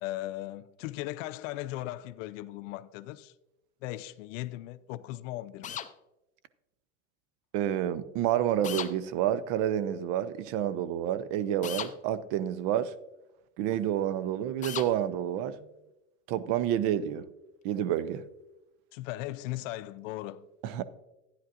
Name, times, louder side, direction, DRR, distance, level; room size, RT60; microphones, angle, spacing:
voice 1, 0.0-3.3 3.8-5.8 18.9-20.5, left 15 dB, 70° left, 0.6 m, -38 dB
sound 1, 5.6-5.9 8.6-8.9 11.6-11.9 14.6-14.9, left 9 dB, 20° left, 0.5 m, -36 dB
voice 2, 7.5-12.9 13.6-15.6 16.3-17.2 17.6-18.2 20.6-20.8, right 11 dB, 55° right, 0.7 m, -29 dB
12.5 x 9.9 x 2.5 m
supercardioid pair, 110°, 40 cm